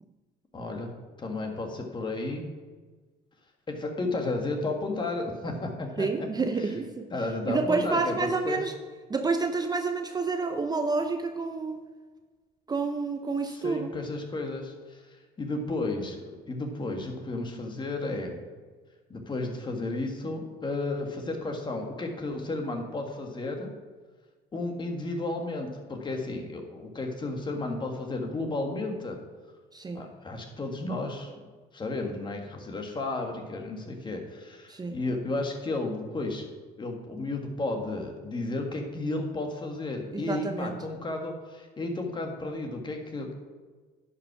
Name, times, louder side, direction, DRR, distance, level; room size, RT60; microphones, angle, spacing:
voice 1, 0.5-0.9 1.2-2.5 3.7-6.1 7.1-8.6 13.6-18.4 19.1-23.7 24.5-29.2 29.9-31.3 31.7-36.5 36.8-43.3, left 2 dB, 25° left, 3 dB, 1.7 m, -33 dB
voice 2, 6.0-7.1 7.5-8.7 9.1-11.8 12.7-13.9 29.7-30.1 34.7-35.0 40.1-40.9, right 4 dB, 25° right, 6 dB, 0.7 m, -29 dB
10.5 x 5.7 x 6.1 m, 1.4 s
cardioid pair, 110°, 17 cm